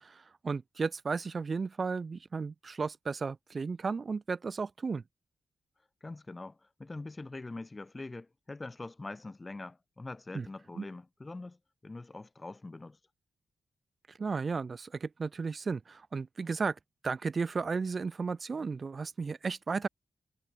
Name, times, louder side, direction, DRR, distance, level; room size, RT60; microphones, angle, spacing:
voice 1, 0.0-5.0 10.3-10.5 10.8-10.9 14.2-19.9, right 4 dB, 40° right, 4.4 m, -34 dB
voice 2, 6.0-13.0, left 2 dB, 20° left, 7.7 m, -44 dB
wide cardioid pair, 150°, 0 cm